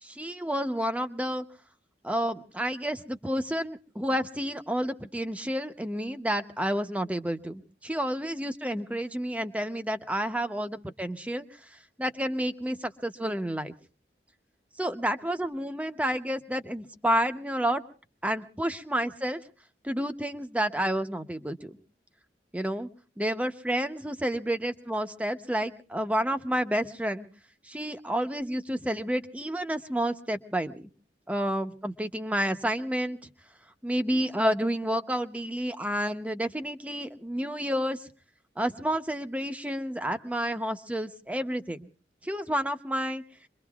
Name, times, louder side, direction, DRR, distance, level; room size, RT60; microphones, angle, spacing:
voice 1, 0.0-1.4 2.0-11.5 11.7-13.7 14.8-17.8 18.2-19.4 19.8-21.8 22.5-22.9 23.2-27.3 27.7-30.8 31.3-33.2 33.8-38.1 38.6-41.9 42.2-43.2, equal, 10° right, 8 dB, 0.8 m, -30 dB
26.0 x 23.0 x 2.4 m, 0.39 s
head